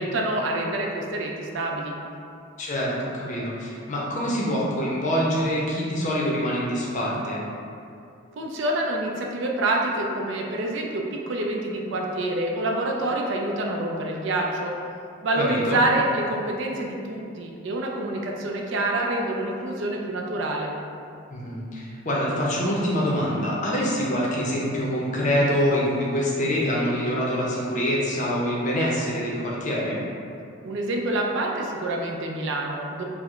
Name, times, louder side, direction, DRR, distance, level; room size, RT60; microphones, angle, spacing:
voice 1, 0.0-2.0 8.4-14.7 15.2-20.7 30.6-33.0, right 1 dB, 65° right, 0 dB, 0.4 m, -27 dB
voice 2, 2.6-7.4 15.4-15.8 21.3-30.0, equal, 40° left, -4 dB, 0.5 m, -25 dB
4.4 x 2.0 x 2.4 m, 2.5 s
head